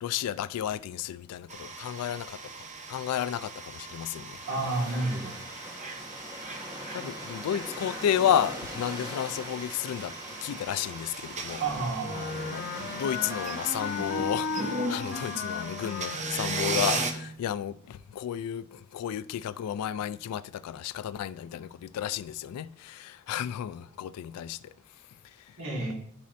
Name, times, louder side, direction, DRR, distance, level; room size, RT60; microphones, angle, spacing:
voice 1, 0.0-4.4 6.9-10.1 10.4-11.6 12.1-24.7 25.2-25.6, left 10 dB, 90° left, 0.3 m, -32 dB
sound 1, 1.5-17.1, right 3 dB, 35° right, 0.7 m, -38 dB
sound 2, 4.3-14.3, equal, 15° right, 1.2 m, -42 dB
voice 2, 4.5-5.3 11.6-12.2 25.6-25.9, right 3 dB, 65° right, 1.7 m, -30 dB
Wind instrument woodwind instrument, 12.0-17.3, left 4 dB, 45° left, 1.0 m, -35 dB
11.5 x 4.1 x 2.6 m
head